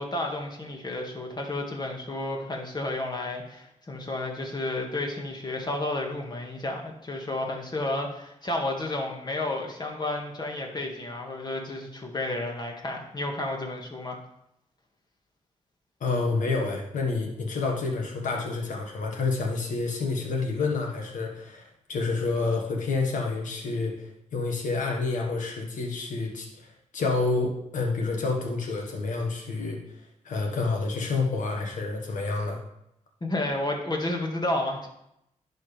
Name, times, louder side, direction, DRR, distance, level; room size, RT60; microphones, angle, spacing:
voice 1, 0.0-14.2 33.2-34.9, left 2 dB, 35° left, 1 dB, 1.8 m, -31 dB
voice 2, 16.0-23.9 24.3-26.7 26.9-29.8 30.2-32.6, left 3 dB, 80° left, 1 dB, 1.6 m, -28 dB
10.5 x 4.8 x 3.4 m, 0.81 s
cardioid pair, 65°, 13 cm